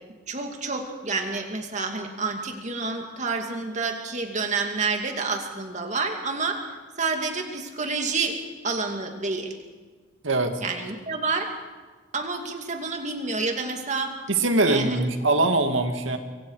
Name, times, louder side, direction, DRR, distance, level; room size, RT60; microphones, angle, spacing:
voice 1, 0.3-6.6 7.0-8.4 8.6-9.6 10.6-11.5 12.1-14.1 14.7-15.1, right 4 dB, 40° right, 4 dB, 2.5 m, -29 dB
voice 2, 10.2-10.6 14.3-16.2, right 2 dB, 85° right, 6 dB, 2.1 m, -22 dB
25.0 x 24.5 x 4.9 m, 1.4 s
head